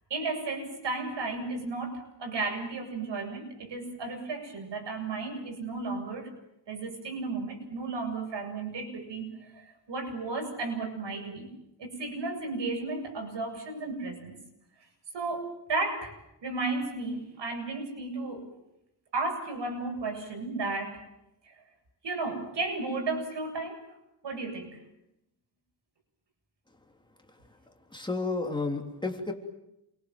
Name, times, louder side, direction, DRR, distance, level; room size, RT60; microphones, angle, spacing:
voice 1, 0.1-6.3 6.7-11.5 11.8-14.4 15.1-16.1 16.4-18.5 19.1-21.0 21.4-21.6 22.0-23.9 24.2-24.8, right 3 dB, 85° right, 5 dB, 7.9 m, -34 dB
voice 2, 27.9-29.3, left 3 dB, 10° left, 2 dB, 3.2 m, -31 dB
29.0 x 24.0 x 7.6 m, 0.86 s
wide cardioid pair, 160°, 42 cm